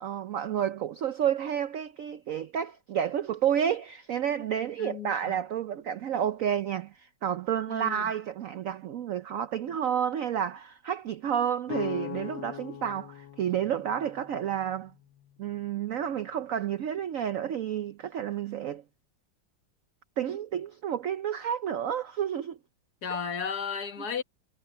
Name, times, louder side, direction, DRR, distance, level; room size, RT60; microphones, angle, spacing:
voice 1, 0.0-14.9 15.4-18.8 20.2-22.6, right 9 dB, 90° right, 0.7 m, -30 dB
voice 2, 4.8-5.4 7.7-8.1 23.0-24.2, left 6 dB, 55° left, 1.9 m, -34 dB
sound 1, 11.7-15.5, left 11 dB, 70° left, 1.5 m, -41 dB
omnidirectional pair, 2.2 m